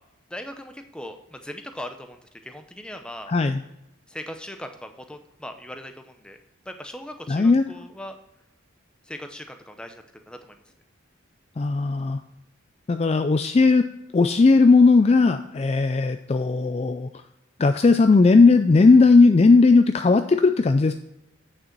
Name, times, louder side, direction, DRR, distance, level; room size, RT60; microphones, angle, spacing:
voice 1, 0.3-3.3 4.1-6.4 6.7-8.2 9.0-10.6, left 1 dB, 5° left, 6 dB, 0.7 m, -39 dB
voice 2, 3.3-3.6 7.3-7.6 11.6-12.2 12.9-13.9 14.1-17.1 17.6-20.9, left 3 dB, 30° left, 8 dB, 0.3 m, -17 dB
8.8 x 6.6 x 4.5 m, 0.86 s
head